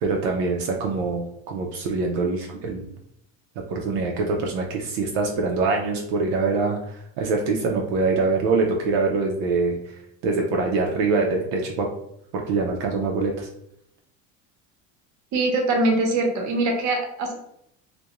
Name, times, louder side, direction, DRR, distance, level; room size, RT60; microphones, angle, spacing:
voice 1, 0.0-2.9 3.7-11.9 12.3-13.5, right 3 dB, 80° right, 1 dB, 0.5 m, -24 dB
voice 2, 15.3-17.3, right 2 dB, 45° right, 2 dB, 0.8 m, -22 dB
2.3 x 2.2 x 2.8 m, 0.75 s
supercardioid pair, 100°, 40 cm